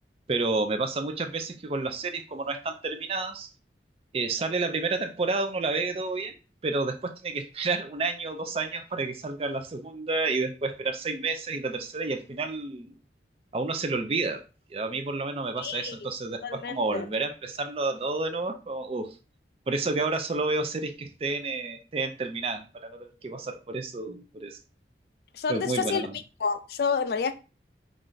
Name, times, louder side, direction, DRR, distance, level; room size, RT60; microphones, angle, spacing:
voice 1, 0.3-3.5 4.1-6.4 6.6-12.9 13.5-14.4 14.7-19.2 19.7-24.6 25.5-26.2, right 3 dB, 30° right, 0.4 m, -30 dB
voice 2, 15.6-16.0 16.4-17.0 25.3-26.0 26.4-27.3, left 5 dB, 60° left, 0.3 m, -29 dB
3.2 x 2.5 x 3.8 m
head